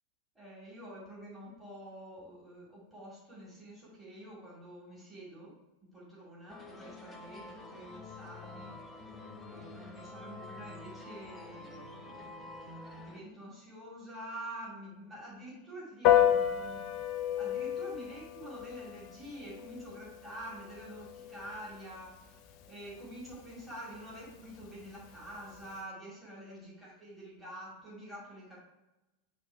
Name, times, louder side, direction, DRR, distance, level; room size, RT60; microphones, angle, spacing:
voice 1, 0.4-5.6 5.8-9.0 9.5-12.3 12.9-16.9 17.4-22.4 22.7-28.6, right 1 dB, 10° right, -7 dB, 2.2 m, -47 dB
sound 1, 6.5-13.2, left 2 dB, 10° left, 1.0 m, -48 dB
Piano, 16.0-25.8, left 11 dB, 40° left, 0.5 m, -33 dB
8.5 x 3.2 x 4.5 m, 1.0 s
figure-of-eight pair, 90°, 0 cm